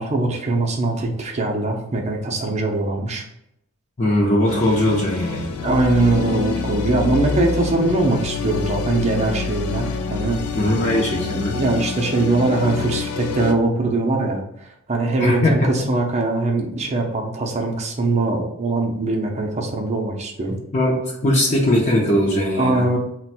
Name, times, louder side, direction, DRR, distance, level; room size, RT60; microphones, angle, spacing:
voice 1, 0.0-3.2 5.6-10.4 11.2-14.4 14.9-20.6 22.6-23.0, right 2 dB, 35° right, 1 dB, 0.5 m, -21 dB
voice 2, 4.0-5.5 10.5-11.6 15.2-15.7 20.7-22.9, left 1 dB, 35° left, -4 dB, 0.6 m, -20 dB
sound 1, 4.5-13.5, left 5 dB, 80° left, 0.4 m, -27 dB
2.5 x 2.2 x 4.0 m, 0.78 s
head